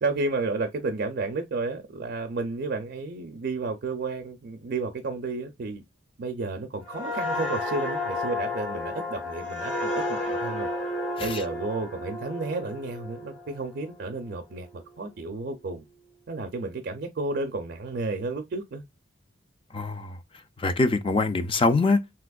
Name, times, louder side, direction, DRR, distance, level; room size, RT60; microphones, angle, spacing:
voice 1, 0.0-5.8 6.2-10.7 11.2-15.8 16.3-18.8, right 3 dB, 55° right, 0.4 m, -32 dB
sound 1, 6.9-14.3 14.7-15.0, left 2 dB, 75° left, 2.0 m, -32 dB
voice 2, 19.7-20.2 20.6-22.0, left 3 dB, 25° left, 0.3 m, -24 dB
3.4 x 2.8 x 2.2 m
head